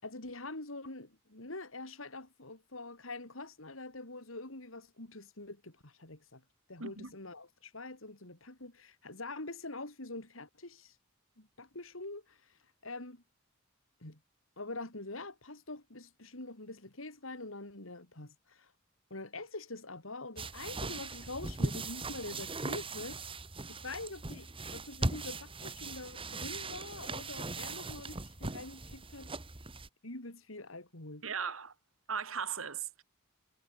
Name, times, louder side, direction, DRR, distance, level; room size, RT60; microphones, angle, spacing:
voice 1, 0.0-6.4 6.7-11.0 11.4-13.2 14.0-14.2 14.6-18.7 19.1-23.2 23.7-29.4 30.0-31.3, left 2 dB, 80° left, 4.1 m, -45 dB
voice 2, 6.8-7.1 31.2-31.7 32.1-33.0, right 6 dB, 85° right, 2.5 m, -37 dB
sound 1, 20.4-29.9, right 2 dB, 25° right, 2.0 m, -39 dB
head